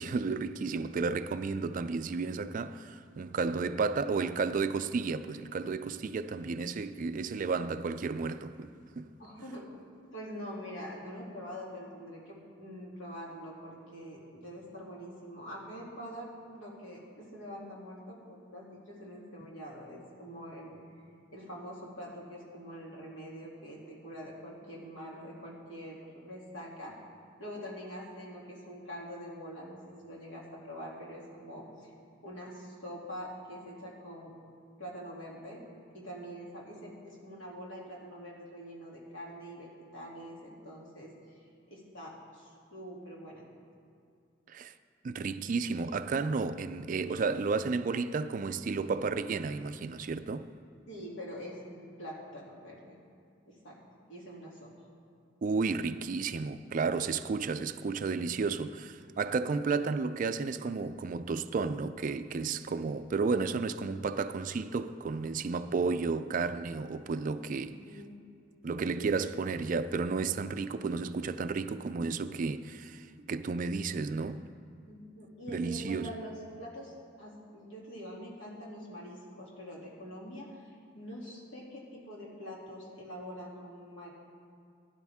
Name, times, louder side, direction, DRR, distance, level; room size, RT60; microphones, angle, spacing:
voice 1, 0.0-9.1 44.5-44.7 45.0-50.5 55.4-67.8 68.6-74.4 75.5-76.1, right 4 dB, 40° right, 0.3 m, -32 dB
voice 2, 9.2-9.7 10.1-20.8 21.3-26.9 27.4-31.9 32.2-34.3 34.8-35.6 35.9-41.4 41.7-43.4 50.9-53.0 53.5-53.8 54.1-54.7 67.8-68.2 74.9-80.6 80.9-84.1, equal, 75° left, 2.7 m, -45 dB
16.5 x 10.5 x 3.6 m
head